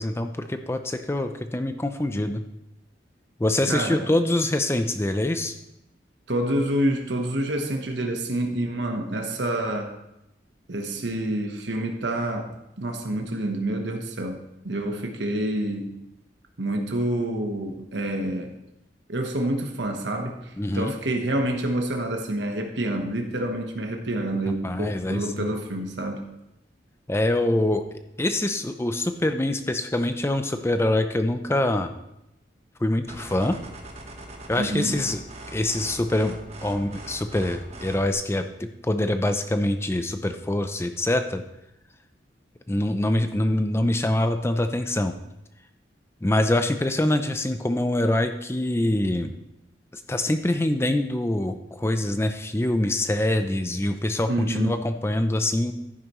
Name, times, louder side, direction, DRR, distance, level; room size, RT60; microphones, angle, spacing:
voice 1, 0.0-2.4 3.4-5.6 20.6-20.9 24.6-25.5 27.1-27.8 28.2-31.9 32.8-33.6 34.5-35.2 35.5-36.4 36.6-41.4 42.7-45.1 46.2-49.3 49.9-55.7, left 1 dB, 15° left, 8 dB, 0.5 m, -24 dB
voice 2, 3.7-4.1 6.3-9.9 10.7-12.5 12.8-15.9 16.6-18.5 19.1-26.2 34.6-35.0 54.3-54.7, right 1 dB, 75° right, 3 dB, 1.1 m, -28 dB
sound 1, 33.1-38.1, right 1 dB, 35° right, 1.3 m, -41 dB
11.0 x 9.9 x 3.1 m, 0.86 s
head